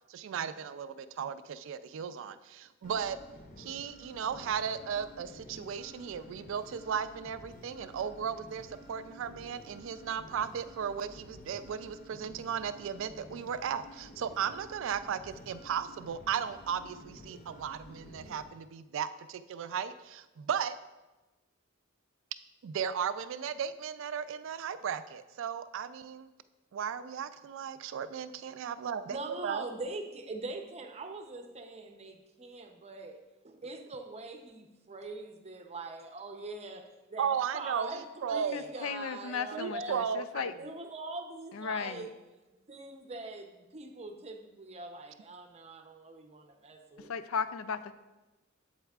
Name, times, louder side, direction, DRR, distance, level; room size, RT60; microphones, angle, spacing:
voice 1, 0.1-3.2 3.6-20.7 22.6-26.3 26.7-29.7 37.2-37.9 38.2-38.7 39.5-40.5, right 7 dB, 65° right, 13 dB, 0.3 m, -35 dB
sound 1, 2.8-18.4, equal, 40° left, 0.8 m, -52 dB
voice 2, 29.1-36.8 37.1-40.0 40.6-42.1 42.7-47.1, right 3 dB, 30° right, 5 dB, 0.7 m, -42 dB
voice 3, 38.5-40.5 41.5-42.1 47.0-47.9, left 6 dB, 80° left, 12 dB, 0.4 m, -36 dB
8.0 x 7.9 x 2.4 m, 1.1 s
head